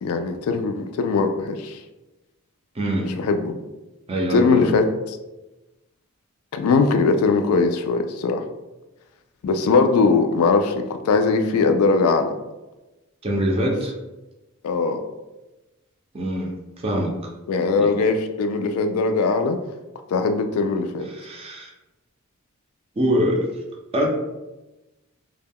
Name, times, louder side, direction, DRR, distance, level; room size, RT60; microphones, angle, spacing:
voice 1, 0.0-1.8 3.0-3.6 4.3-5.2 6.5-8.4 9.4-12.3 14.6-15.0 17.5-19.6 20.1-21.1, left 4 dB, 80° left, 7 dB, 0.3 m, -20 dB
voice 2, 2.7-3.1 4.1-4.7 13.2-13.9 16.1-17.2 17.5-17.9 21.1-21.7 23.0-23.5 23.9-24.1, equal, 25° right, -1 dB, 0.4 m, -24 dB
2.2 x 2.1 x 3.4 m, 1.0 s
head